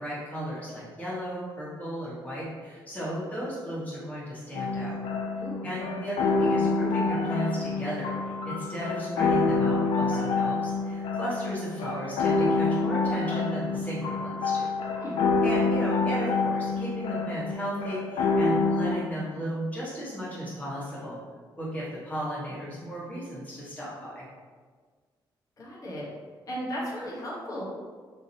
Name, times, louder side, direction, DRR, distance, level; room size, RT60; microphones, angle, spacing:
voice 1, 0.0-5.0 5.6-14.7 15.4-21.2 21.6-24.2, right 1 dB, 20° left, -8 dB, 1.4 m, -35 dB
sound 1, 4.5-18.9, left 3 dB, 80° left, 0.4 m, -27 dB
voice 2, 5.4-5.7 14.9-15.2 25.6-26.1 26.5-27.6, equal, 40° left, -5 dB, 1.1 m, -35 dB
3.5 x 2.9 x 2.7 m, 1.5 s
cardioid pair, 100°, 9 cm